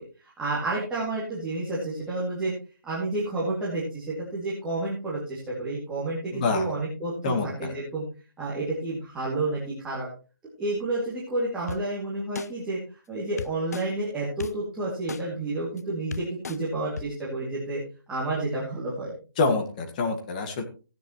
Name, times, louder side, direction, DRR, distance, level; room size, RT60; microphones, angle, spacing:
voice 1, 0.2-2.5 2.8-8.0 8.4-10.1 10.6-12.8 13.1-17.8 18.1-19.1, right 2 dB, 5° right, -8 dB, 2.5 m, -30 dB
voice 2, 6.3-6.6 7.2-7.7 19.4-20.6, left 3 dB, 20° left, 5 dB, 1.7 m, -26 dB
sound 1, 11.7-11.8 12.3-12.5 13.4-13.8 14.4-14.5 15.1-15.2 15.8-15.9 16.1-16.6 17.0-17.1, left 6 dB, 45° left, 0.5 m, -34 dB
16.0 x 10.0 x 3.0 m, 0.34 s
hypercardioid pair, 165°, 12 cm